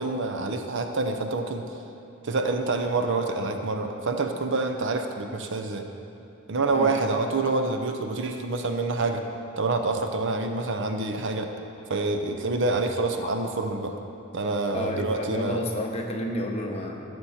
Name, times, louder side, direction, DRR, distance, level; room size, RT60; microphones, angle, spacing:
voice 1, 0.0-1.7 2.2-5.9 6.5-9.3 9.6-11.5 11.9-13.9 14.3-15.6, right 3 dB, 60° right, 5 dB, 0.7 m, -27 dB
voice 2, 14.7-17.0, left 1 dB, 30° left, 1 dB, 1.0 m, -31 dB
14.5 x 6.8 x 4.3 m, 2.7 s
head